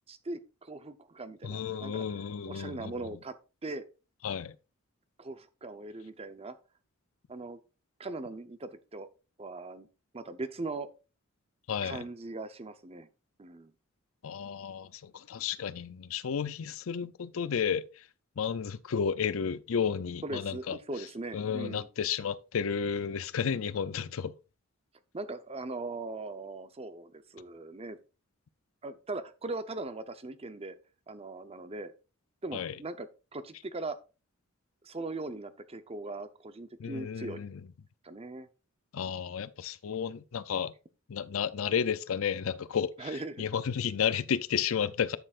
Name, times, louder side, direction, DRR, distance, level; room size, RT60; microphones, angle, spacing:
voice 1, 0.1-3.3 3.6-3.9 5.2-6.5 7.3-7.6 8.0-9.1 9.4-9.9 10.1-10.9 11.8-13.1 13.4-13.7 20.2-21.9 25.1-28.0 28.8-30.8 31.1-31.9 32.4-34.0 34.8-37.4 38.0-38.5 43.0-43.4, right 2 dB, 30° right, 0.7 m, -40 dB
voice 2, 1.4-2.9 4.2-4.5 11.7-12.0 14.2-17.8 18.4-20.8 21.3-24.3 32.5-32.7 36.8-37.6 38.9-40.7 41.1-43.1 43.4-45.2, left 7 dB, 75° left, 0.5 m, -32 dB
11.0 x 6.6 x 2.4 m
head